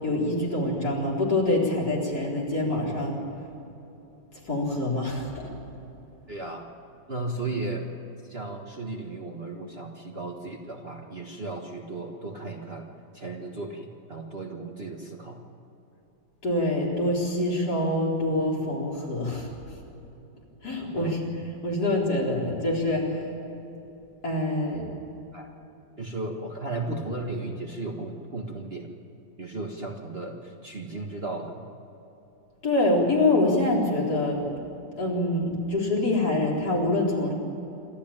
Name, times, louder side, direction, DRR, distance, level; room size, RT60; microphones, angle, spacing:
voice 1, 0.0-3.2 4.4-5.4 16.4-19.5 20.6-21.3 21.6-23.2 24.2-24.9 32.6-34.4 35.0-37.3, left 2 dB, 50° left, -3 dB, 4.5 m, -25 dB
voice 2, 6.3-6.6 7.1-7.9 8.3-12.8 13.1-15.4 20.9-21.3 25.3-25.5 26.0-28.9 29.4-31.6, right 2 dB, 35° right, 1 dB, 1.6 m, -35 dB
27.5 x 13.0 x 8.9 m, 3.0 s
omnidirectional pair, 2.1 m